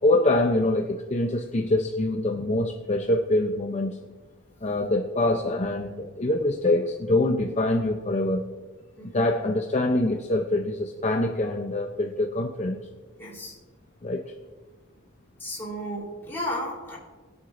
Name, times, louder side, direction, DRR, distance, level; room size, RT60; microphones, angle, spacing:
voice 1, 0.0-4.0 4.6-8.5 9.1-12.8 14.0-14.3, left 2 dB, 30° left, 3 dB, 0.6 m, -24 dB
voice 2, 13.2-13.6 15.4-17.0, equal, 10° left, -6 dB, 3.6 m, -34 dB
20.5 x 8.0 x 2.6 m, 1.3 s
head